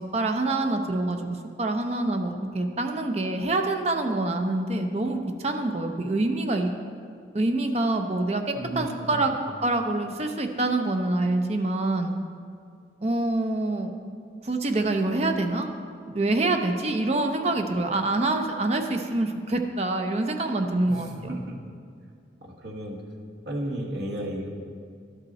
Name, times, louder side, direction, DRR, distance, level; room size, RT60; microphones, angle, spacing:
voice 1, 0.1-6.7 7.3-8.4 8.8-9.3 9.6-12.1 13.0-13.9 14.4-15.7 16.1-21.4, right 2 dB, 35° right, 5 dB, 0.6 m, -26 dB
voice 2, 8.5-9.3 20.9-21.6 22.4-23.0 23.5-24.5, right 1 dB, 65° right, -1 dB, 1.3 m, -34 dB
11.5 x 5.5 x 4.1 m, 2.3 s
head